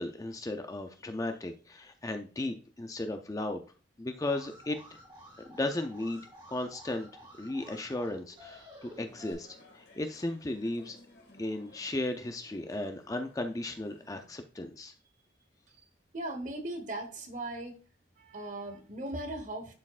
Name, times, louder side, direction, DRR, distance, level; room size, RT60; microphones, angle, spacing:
voice 1, 0.0-3.6 4.0-4.8 5.5-6.2 6.5-7.1 7.4-11.0 11.4-14.9, left 2 dB, 20° left, 6 dB, 0.4 m, -35 dB
Alarm, 4.2-9.3, equal, 25° right, 1.8 m, -52 dB
sound 1, 9.0-14.3, left 2 dB, 65° left, 2.1 m, -59 dB
voice 2, 16.1-17.8 18.2-19.7, right 1 dB, 45° right, 6 dB, 1.2 m, -38 dB
10.5 x 4.3 x 2.4 m, 0.36 s
head